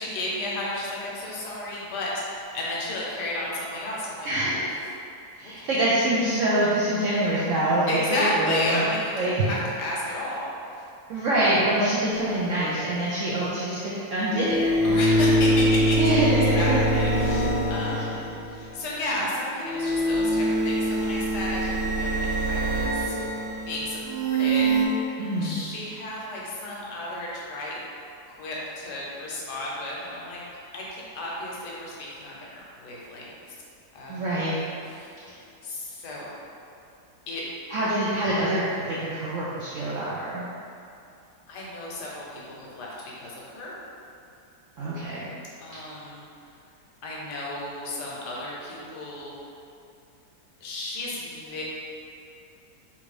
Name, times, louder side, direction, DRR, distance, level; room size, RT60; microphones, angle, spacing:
voice 1, 0.0-4.7 5.4-5.8 7.9-10.8 14.8-16.0 16.5-23.2 23.7-24.8 25.4-27.8 28.4-30.4 30.7-32.4 32.8-33.3 33.9-34.4 34.8-35.2 35.6-36.3 37.3-37.4 41.5-43.7 45.6-46.2 47.0-49.3 50.6-51.6, left 1 dB, 80° left, -4 dB, 1.3 m, -33 dB
voice 2, 4.2-4.6 5.3-8.8 9.2-9.5 11.1-14.7 16.0-16.8 17.8-18.0 25.2-25.6 34.1-34.6 37.7-40.5 44.8-45.3, right 1 dB, 75° right, -9 dB, 0.7 m, -25 dB
sound 1, 12.1-12.2 14.3-18.8 19.6-24.9, right 1 dB, 90° right, 1.4 m, -24 dB
3.4 x 2.6 x 3.2 m, 2.6 s
omnidirectional pair, 1.8 m